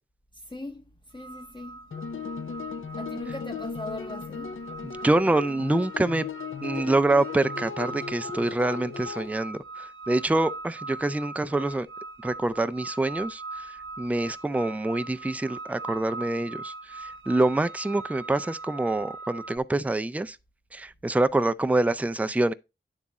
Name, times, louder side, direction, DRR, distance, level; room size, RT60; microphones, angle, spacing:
voice 1, 0.3-1.8 3.0-4.6, left 2 dB, 20° left, 0.7 m, -40 dB
sound 1, 1.1-19.6, right 3 dB, 70° right, 0.6 m, -41 dB
sound 2, 1.9-9.3, left 6 dB, 70° left, 0.5 m, -37 dB
voice 2, 4.8-6.2 6.6-11.9 12.2-13.4 14.0-20.4 20.7-22.5, right 2 dB, 5° right, 0.4 m, -26 dB
9.6 x 3.6 x 4.1 m
wide cardioid pair, 65°, 21 cm